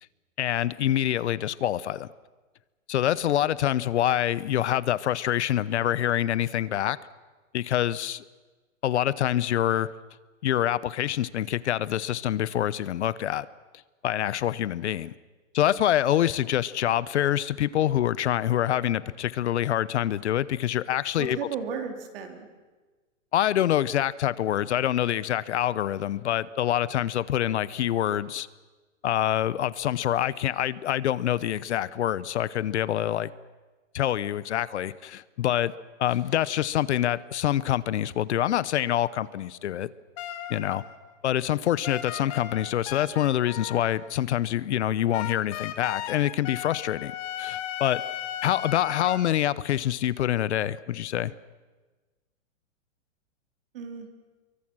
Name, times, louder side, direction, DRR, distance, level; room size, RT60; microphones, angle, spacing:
voice 1, 0.4-2.1 2.9-7.0 7.5-8.2 8.8-9.9 10.4-13.5 14.0-15.1 15.5-21.4 23.3-28.5 29.0-33.3 33.9-35.7 36.0-39.9 40.5-40.8 41.2-47.1 47.4-48.0 48.4-51.3, left 12 dB, 60° left, 19 dB, 0.8 m, -26 dB
voice 2, 21.2-22.5 53.7-54.2, right 6 dB, 45° right, 5 dB, 3.5 m, -35 dB
sound 1, 40.2-41.2 41.8-44.1 45.1-49.2, left 11 dB, 25° left, 1.5 m, -36 dB
26.5 x 23.5 x 6.2 m, 1.3 s
hypercardioid pair, 170°, 38 cm